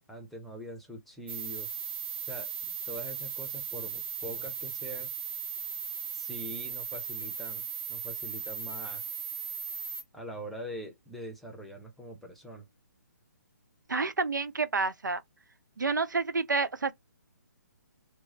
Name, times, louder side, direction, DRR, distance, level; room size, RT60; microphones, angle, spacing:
voice 1, 0.1-1.7 2.2-5.1 6.1-9.1 10.1-12.7, equal, ahead, 0.7 m, -43 dB
sound 1, 1.3-10.0, right 7 dB, 40° right, 0.9 m, -37 dB
voice 2, 13.9-15.2 15.8-16.9, right 4 dB, 90° right, 0.5 m, -29 dB
3.0 x 2.2 x 3.8 m
figure-of-eight pair, 145°, 10 cm